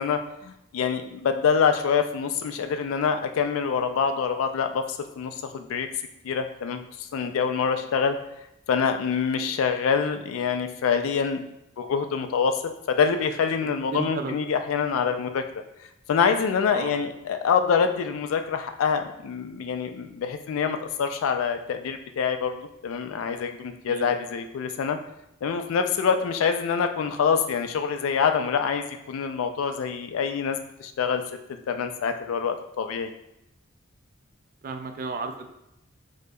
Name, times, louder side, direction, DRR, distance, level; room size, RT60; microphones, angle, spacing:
voice 1, 0.0-5.9 6.2-8.2 8.7-11.4 11.8-15.4 16.1-25.0 25.4-31.2 31.7-33.1, left 6 dB, 75° left, 7 dB, 0.3 m, -26 dB
voice 2, 13.9-14.4 16.7-16.9 23.9-24.1 34.6-35.5, right 4 dB, 45° right, 7 dB, 0.3 m, -33 dB
5.0 x 2.1 x 2.2 m, 0.84 s
head